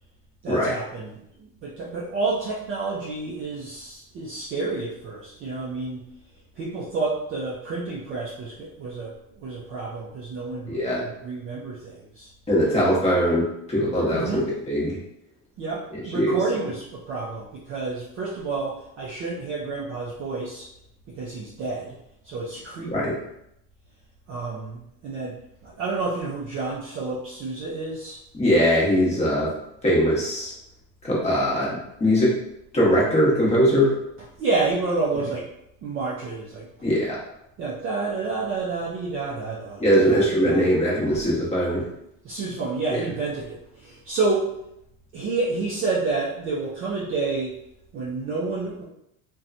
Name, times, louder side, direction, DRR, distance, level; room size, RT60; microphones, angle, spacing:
voice 1, 0.4-6.1 6.6-12.3 14.1-14.5 15.6-20.7 21.1-22.0 22.2-23.1 24.3-25.4 25.6-28.2 34.4-35.5 35.8-36.7 37.6-40.7 41.1-41.2 42.2-44.5 45.1-47.5 47.9-48.8, right 3 dB, 30° right, -5 dB, 0.4 m, -29 dB
voice 2, 10.7-11.0 12.5-15.0 15.9-16.4 22.9-23.1 28.3-29.5 29.8-30.5 31.0-32.3 32.7-33.9 36.8-37.2 39.8-41.9, equal, 15° left, -6 dB, 0.9 m, -21 dB
2.8 x 2.2 x 2.5 m, 0.79 s
supercardioid pair, 125°, 44 cm